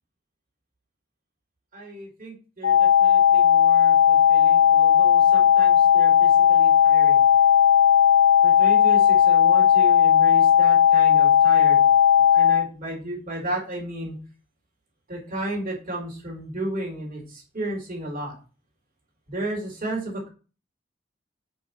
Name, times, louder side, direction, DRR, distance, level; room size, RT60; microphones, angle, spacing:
voice 1, 1.7-7.2 8.4-11.9 12.3-14.2 15.1-18.3 19.3-20.3, right 1 dB, 50° right, -2 dB, 3.7 m, -34 dB
sound 1, 2.6-12.6, left 8 dB, 70° left, 0.9 m, -16 dB
6.2 x 5.6 x 5.6 m, 0.35 s
head